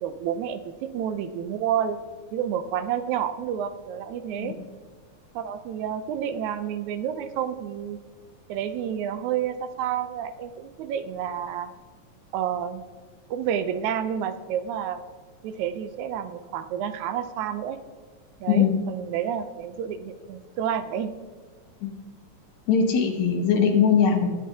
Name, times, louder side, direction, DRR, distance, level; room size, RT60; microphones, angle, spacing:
voice 1, 0.0-2.0 2.3-4.6 5.4-8.0 8.5-11.7 12.3-12.8 13.3-15.0 15.4-17.8 18.4-21.1, right 9 dB, 85° right, 10 dB, 2.0 m, -29 dB
voice 2, 22.7-24.3, left 7 dB, 70° left, 3 dB, 2.5 m, -21 dB
22.0 x 7.6 x 2.8 m, 1.5 s
omnidirectional pair, 3.3 m